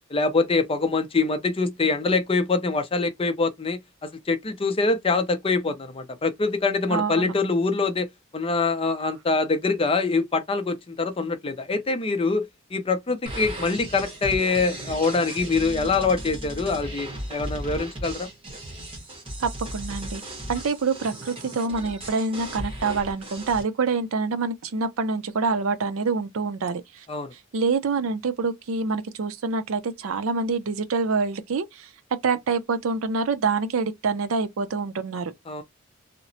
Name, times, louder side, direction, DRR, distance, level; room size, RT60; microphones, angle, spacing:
voice 1, 0.1-8.1 8.3-12.5 12.7-18.3 27.1-27.3 35.5-35.6, left 3 dB, 25° left, 0.5 m, -24 dB
voice 2, 6.9-7.3 19.4-20.2 20.5-27.1 27.3-31.9 32.2-35.3, right 4 dB, 80° right, 0.5 m, -26 dB
sound 1, 13.3-23.6, right 1 dB, 25° right, 1.0 m, -36 dB
2.9 x 2.0 x 2.6 m
head